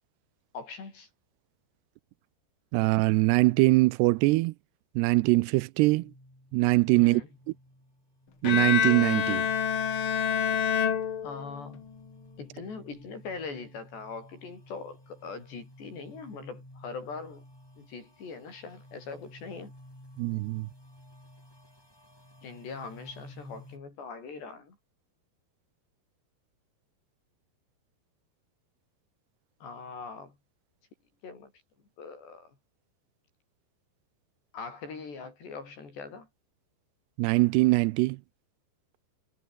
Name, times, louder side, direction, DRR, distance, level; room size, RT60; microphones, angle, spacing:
voice 1, 0.5-1.1 6.9-7.3 11.2-11.8 12.4-17.4 17.8-19.7 22.4-24.8 29.6-30.4 31.2-31.5 32.0-32.6 34.5-36.3, left 4 dB, 85° left, 9.7 m, -41 dB
voice 2, 2.7-4.5 5.0-6.1 6.5-7.2 8.4-9.5 20.2-20.7 37.2-38.2, right 21 dB, 85° right, 2.7 m, -23 dB
sound 1, 5.8-23.8, left 1 dB, 5° left, 4.7 m, -53 dB
Bowed string instrument, 8.4-11.8, left 8 dB, 50° left, 1.5 m, -27 dB
omnidirectional pair, 4.8 m